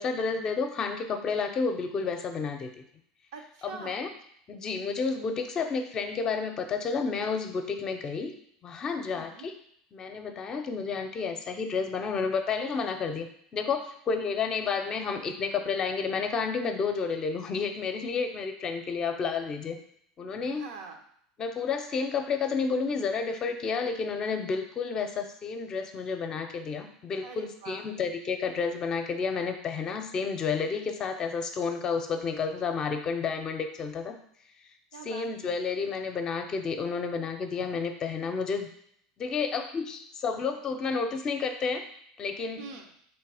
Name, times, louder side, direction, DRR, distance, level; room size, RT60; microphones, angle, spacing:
voice 1, 0.0-2.8 3.6-4.1 4.5-8.3 8.6-9.5 9.9-13.3 13.5-19.8 20.2-20.6 21.4-34.1 35.0-38.7 39.2-41.8 42.2-42.6, left 5 dB, 35° left, 6 dB, 0.6 m, -31 dB
voice 2, 3.3-4.0 9.1-9.5 20.5-21.0 27.2-27.8 34.9-35.3 42.6-42.9, right 5 dB, 80° right, 3 dB, 0.8 m, -43 dB
3.4 x 3.1 x 4.8 m, 0.67 s
supercardioid pair, 120°, 2 cm